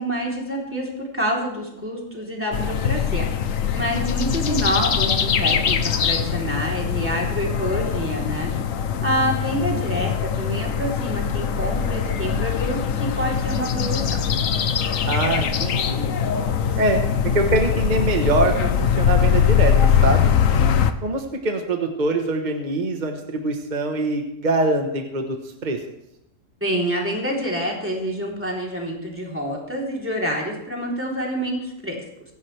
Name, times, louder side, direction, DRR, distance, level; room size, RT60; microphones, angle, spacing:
voice 1, 0.0-3.3 3.7-8.5 9.0-14.2 26.6-32.0, equal, 10° right, -3 dB, 3.5 m, -27 dB
sound 1, 2.5-20.9, left 7 dB, 80° left, 1.3 m, -22 dB
voice 2, 15.1-16.1 16.8-19.7 20.0-20.3 21.0-25.4 25.6-25.8, right 2 dB, 35° right, 4 dB, 1.4 m, -24 dB
24.0 x 10.5 x 3.4 m, 0.83 s
omnidirectional pair, 1.3 m